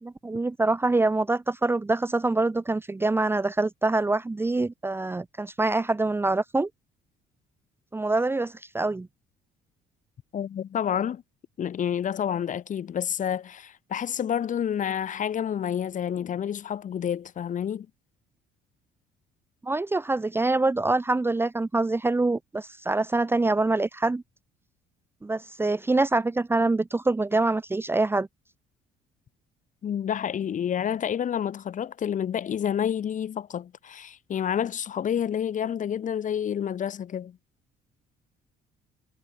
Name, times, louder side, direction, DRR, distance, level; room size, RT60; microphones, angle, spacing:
voice 1, 0.0-6.7 7.9-9.1 19.6-24.2 25.2-28.3, right 2 dB, 15° right, 0.9 m, -25 dB
voice 2, 10.3-11.2 11.6-17.9 29.8-37.4, left 9 dB, 50° left, 4.2 m, -29 dB
cardioid pair, 110°, 17 cm